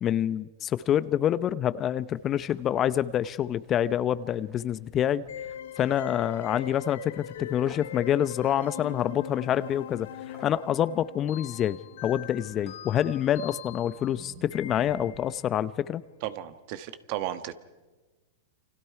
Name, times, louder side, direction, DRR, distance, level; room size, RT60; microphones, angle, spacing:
voice 1, 0.0-5.2 5.8-10.1 10.4-16.0, left 10 dB, 30° left, 0.7 m, -27 dB
sound 1, 2.0-15.2, right 4 dB, 70° right, 5.7 m, -57 dB
sound 2, 2.5-2.6 3.0-3.3 3.7-3.9 4.3-5.5 5.8-6.2 6.6-6.7 7.7-8.0 9.0-9.1 10.3-10.6 12.2-12.3 12.6-12.9, right 1 dB, 5° right, 2.4 m, -54 dB
sound 3, 5.3-15.4, left 11 dB, 70° left, 0.7 m, -42 dB
voice 2, 16.2-17.5, right 12 dB, 55° right, 1.4 m, -34 dB
29.0 x 25.5 x 4.8 m
hypercardioid pair, 110°, 0 cm